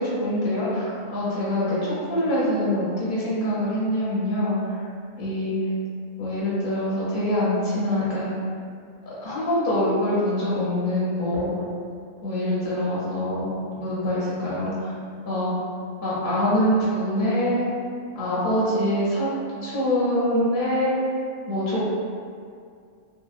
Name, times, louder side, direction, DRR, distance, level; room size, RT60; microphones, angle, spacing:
voice 1, 0.0-4.8 5.2-5.6 6.2-8.3 9.2-11.5 12.2-14.9 15.2-15.5 16.0-17.7 18.1-19.3 19.6-21.0 21.5-21.9, left 1 dB, 50° left, -9 dB, 0.7 m, -24 dB
2.7 x 2.1 x 2.3 m, 2.2 s
omnidirectional pair, 1.3 m